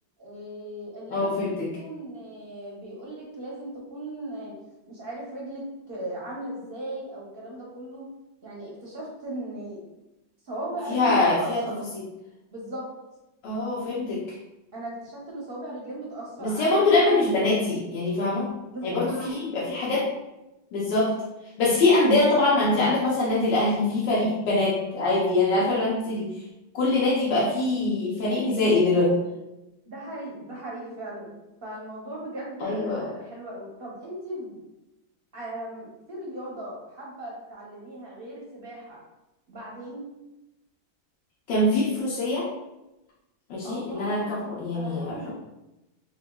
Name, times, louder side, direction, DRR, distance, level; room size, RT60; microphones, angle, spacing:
voice 1, 0.2-4.5 4.9-8.1 8.4-9.8 10.4-11.8 12.5-12.9 14.7-17.5 18.7-19.5 29.9-34.6 35.3-39.0 39.5-40.1 43.6-45.3, right 1 dB, 45° right, -5 dB, 0.8 m, -38 dB
voice 2, 1.1-1.7 10.9-11.6 11.9-12.0 13.4-14.2 16.4-18.5 18.8-20.1 20.7-21.1 21.6-26.3 26.7-29.2 32.6-33.0 41.5-42.5 43.5-45.1, left 2 dB, 80° left, -7 dB, 1.5 m, -23 dB
5.6 x 2.4 x 2.2 m, 0.97 s
omnidirectional pair, 1.9 m